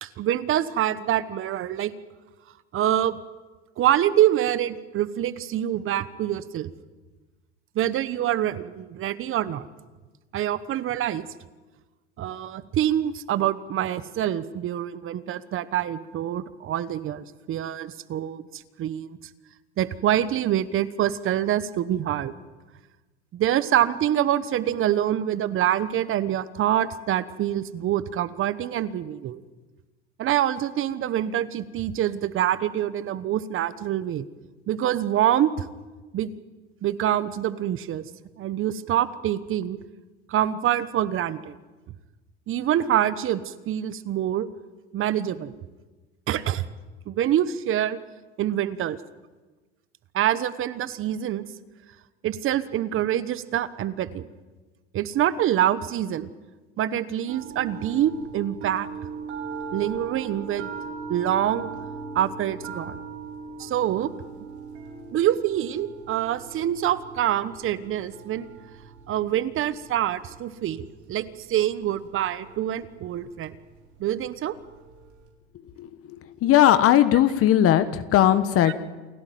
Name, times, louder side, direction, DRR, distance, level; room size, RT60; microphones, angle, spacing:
voice 1, 0.0-1.9 2.7-3.2 3.8-6.7 7.7-9.7 10.3-11.3 12.2-19.1 19.8-22.3 23.3-29.4 30.2-34.2 34.7-35.7 36.1-36.3 36.8-38.0 38.4-39.8 40.3-41.6 42.5-44.5 44.9-45.5 46.3-46.7 47.1-48.0 48.4-49.0 50.1-51.4 52.2-54.3 54.9-56.3 56.8-58.9 59.7-60.7 61.1-61.7 62.1-63.0 63.6-64.1 65.1-68.5 69.1-73.6 74.0-74.5 78.6-78.7, right 11 dB, 40° right, 15 dB, 1.2 m, -25 dB
sound 1, 57.3-75.3, right 4 dB, 80° right, 4.7 m, -40 dB
voice 2, 76.4-78.7, left 11 dB, 40° left, 12 dB, 1.3 m, -18 dB
28.5 x 12.0 x 9.3 m, 1.2 s
supercardioid pair, 105°, 33 cm